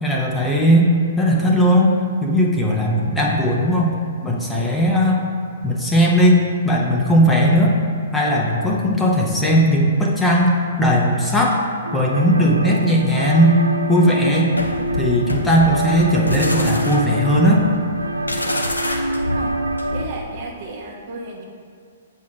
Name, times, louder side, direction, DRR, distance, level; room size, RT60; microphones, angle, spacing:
voice 1, 0.0-0.9 1.2-4.0 4.2-5.2 5.6-7.7 8.1-10.5 10.8-11.6 11.9-13.6 13.9-14.5 15.0-17.6, equal, 5° left, -3 dB, 1.0 m, -17 dB
sound 1, 11.8-20.0, right 1 dB, 80° right, 0.4 m, -26 dB
sound 2, 14.5-20.2, left 1 dB, 85° left, 0.8 m, -27 dB
voice 2, 19.9-21.5, right 2 dB, 45° right, 0 dB, 1.2 m, -33 dB
8.3 x 4.6 x 4.9 m, 2.2 s
figure-of-eight pair, 115°, 0 cm